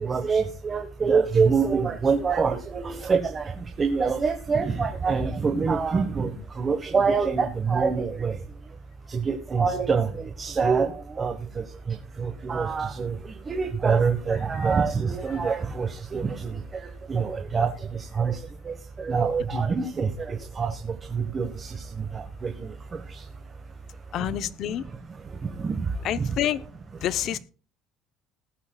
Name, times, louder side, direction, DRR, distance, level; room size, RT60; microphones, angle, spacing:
voice 1, 0.0-3.4 3.8-6.3 6.6-8.3 9.1-11.6 12.2-13.1 13.5-16.5 17.1-17.7 18.2-18.4 18.6-18.7 19.0-21.7 22.1-22.5 25.6-25.7 26.2-26.3, right 5 dB, 20° right, 1.4 m, -25 dB
voice 2, 24.1-24.9 26.0-26.6 27.0-27.4, left 12 dB, 45° left, 0.8 m, -29 dB
20.5 x 8.4 x 2.4 m
cardioid pair, 170°, 0 cm